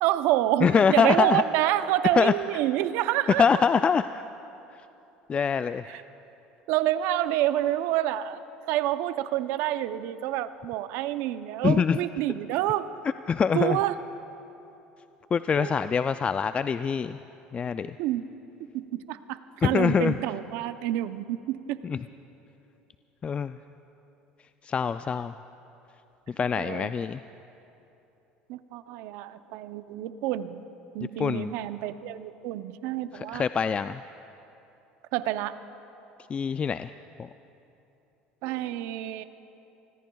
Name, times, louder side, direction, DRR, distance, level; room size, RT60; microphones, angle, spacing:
voice 1, 0.0-3.6 5.9-6.0 6.7-8.4 8.7-12.9 13.5-13.9 15.6-15.8 18.0-18.3 18.6-21.8 26.6-26.9 28.5-30.7 30.9-33.5 35.1-35.6 38.4-39.2, right 13 dB, 70° right, 12 dB, 0.6 m, -28 dB
voice 2, 0.6-1.4 2.2-2.3 3.4-4.2 5.3-6.0 11.6-12.0 13.3-13.8 15.3-17.2 17.5-18.0 19.6-20.1 21.9-22.0 23.2-23.6 24.6-25.3 26.4-27.2 31.2-31.5 33.1-34.0 36.3-36.9 37.2-37.3, left 6 dB, 30° left, 12 dB, 0.3 m, -24 dB
29.0 x 20.0 x 2.3 m, 2.9 s
supercardioid pair, 85°, 4 cm